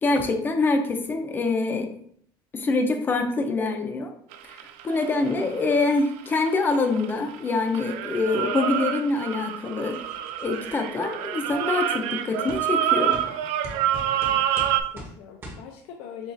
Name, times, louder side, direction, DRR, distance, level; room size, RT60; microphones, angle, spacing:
voice 1, 0.0-1.9 2.5-4.1 4.4-10.0 10.4-13.4, left 3 dB, 20° left, 5 dB, 0.5 m, -25 dB
sound 1, 4.3-7.4 7.7-14.8, right 10 dB, 85° right, 0.4 m, -27 dB
sound 2, 9.9-10.8 11.5-11.6 12.5-12.6 13.1-13.3 13.6-15.1 15.4-15.6, equal, 20° right, 0.9 m, -40 dB
voice 2, 14.2-16.3, left 8 dB, 85° left, 2 dB, 0.5 m, -43 dB
7.0 x 2.4 x 2.6 m, 0.64 s
cardioid pair, 160°, 10 cm